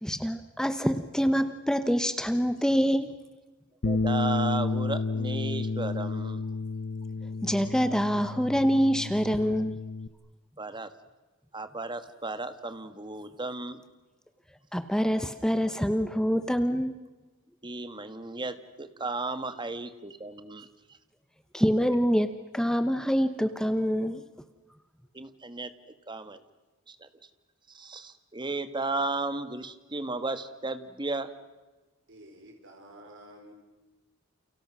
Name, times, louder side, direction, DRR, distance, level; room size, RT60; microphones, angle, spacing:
voice 1, 0.0-3.1 7.4-9.8 14.7-16.9 21.5-24.2, equal, 5° left, 10 dB, 0.9 m, -26 dB
Bass guitar, 3.8-10.1, left 3 dB, 60° left, 0.9 m, -31 dB
voice 2, 3.8-6.4 10.6-10.9 11.5-13.8 17.6-20.7 25.1-25.7 26.1-26.4 26.9-27.1 27.7-31.3, right 3 dB, 20° right, 11 dB, 1.5 m, -34 dB
voice 3, 32.1-33.5, right 1 dB, 65° right, 2 dB, 4.6 m, -50 dB
29.5 x 29.5 x 6.2 m, 1.2 s
head